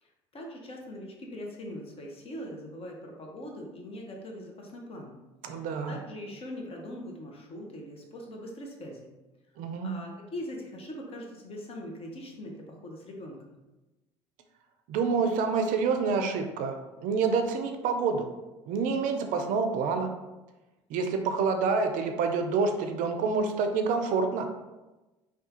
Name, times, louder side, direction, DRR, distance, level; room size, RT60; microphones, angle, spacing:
voice 1, 0.0-5.2 5.5-9.1 9.8-13.5, left 1 dB, 40° left, 0 dB, 0.8 m, -41 dB
voice 2, 5.4-6.0 9.6-9.9 14.9-18.3 18.7-20.1 20.9-24.5, right 4 dB, 60° right, 6 dB, 0.4 m, -27 dB
3.5 x 2.3 x 2.8 m, 1.1 s
hypercardioid pair, 65°, 16 cm